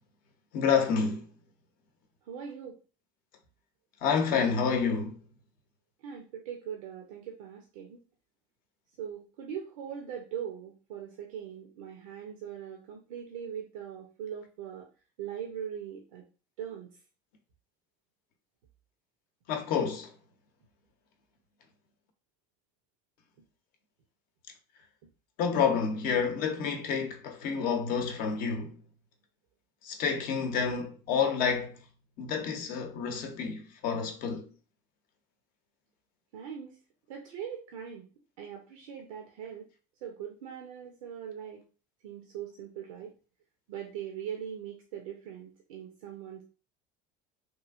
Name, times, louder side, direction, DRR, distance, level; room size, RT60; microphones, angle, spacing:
voice 1, 0.5-1.3 4.0-5.2 19.5-20.1 25.4-28.8 29.8-31.8 32.2-34.5, left 6 dB, 60° left, 0.7 m, -29 dB
voice 2, 2.3-2.8 6.0-8.0 9.0-14.9 15.2-16.3 16.6-17.0 36.3-36.8 37.1-38.1 38.4-39.7 40.0-41.6 42.0-43.1 43.7-46.4, right 8 dB, 90° right, 0.6 m, -41 dB
3.1 x 2.4 x 2.4 m
supercardioid pair, 95°, 16 cm